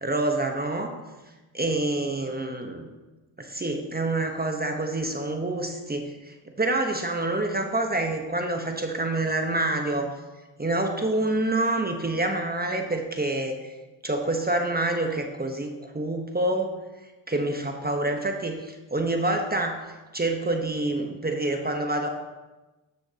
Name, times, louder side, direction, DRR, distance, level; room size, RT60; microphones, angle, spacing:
voice 1, 0.0-0.9 1.5-2.9 3.4-10.1 10.6-13.7 14.0-16.7 17.3-19.8 20.1-22.1, right 2 dB, 20° right, 4 dB, 1.1 m, -27 dB
10.0 x 7.9 x 2.9 m, 1.1 s
supercardioid pair, 60°, 50 cm